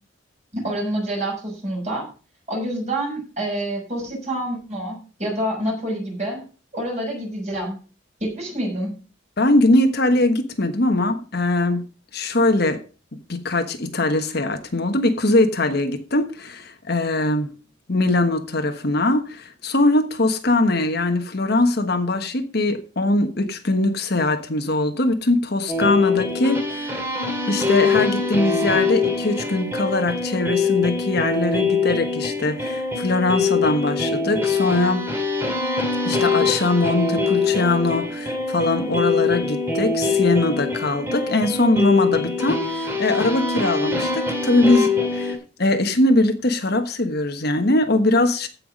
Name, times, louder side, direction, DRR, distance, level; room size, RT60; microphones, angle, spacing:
voice 1, 0.5-2.1 2.5-6.4 6.7-7.8 8.2-8.9, right 1 dB, 35° right, 6.3 m, -27 dB
voice 2, 9.4-11.8 12.1-12.8 13.3-17.5 17.9-27.0 27.5-35.0 36.0-48.5, left 2 dB, 55° left, 1.3 m, -21 dB
sound 1, 25.7-45.4, left 4 dB, 10° right, 2.4 m, -23 dB
15.5 x 5.9 x 5.3 m
head